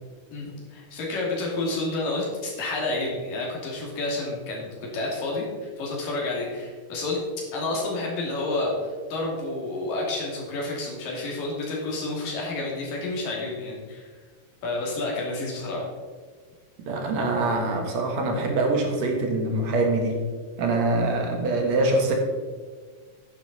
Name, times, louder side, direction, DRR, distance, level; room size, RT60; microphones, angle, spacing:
voice 1, 0.3-4.7 4.9-5.4 5.8-7.2 7.5-8.7 9.1-14.1 14.6-15.9, left 2 dB, 75° left, -3 dB, 4.3 m, -29 dB
voice 2, 16.9-20.1 20.6-22.1, right 2 dB, 60° right, 1 dB, 2.6 m, -24 dB
10.0 x 9.6 x 4.2 m, 1.5 s
omnidirectional pair, 3.9 m